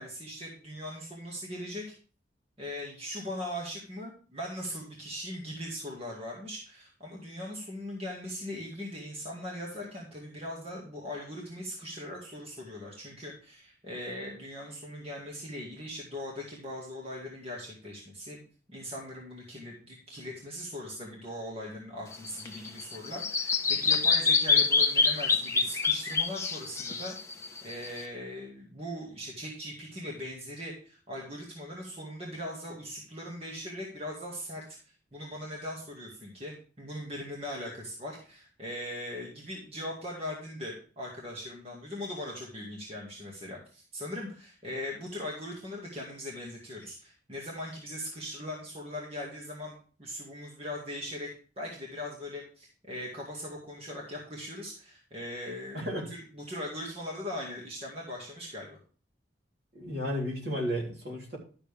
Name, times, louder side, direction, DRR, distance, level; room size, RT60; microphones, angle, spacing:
voice 1, 0.0-1.8 2.6-18.4 18.7-27.2 27.6-34.6 35.1-51.3 51.6-58.8, left 1 dB, 30° right, -2 dB, 2.1 m, -40 dB
Bird vocalization bird call bird song, 22.1-28.0, left 5 dB, 15° left, 0.8 m, -26 dB
voice 2, 55.7-56.1 59.7-61.4, equal, 60° right, -1 dB, 3.4 m, -33 dB
12.0 x 7.0 x 3.5 m, 0.38 s
head